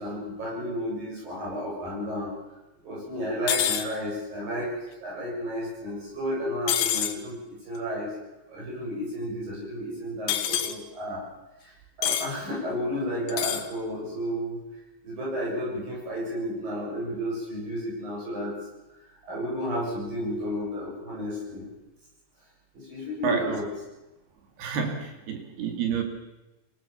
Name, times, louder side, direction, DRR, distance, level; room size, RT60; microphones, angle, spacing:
voice 1, 0.0-2.3 2.8-8.1 8.5-11.2 11.6-14.6 15.0-18.5 19.3-21.7 22.7-23.7, equal, 60° right, -5 dB, 9.4 m, -32 dB
sound 1, 3.5-3.9 6.7-7.2 10.3-10.7 12.0-12.3 13.3-13.7, left 10 dB, 70° left, 2.7 m, -26 dB
voice 2, 23.2-23.6 24.6-26.0, right 7 dB, 85° right, 5 dB, 4.7 m, -29 dB
25.0 x 17.5 x 7.2 m, 1.0 s
omnidirectional pair, 4.4 m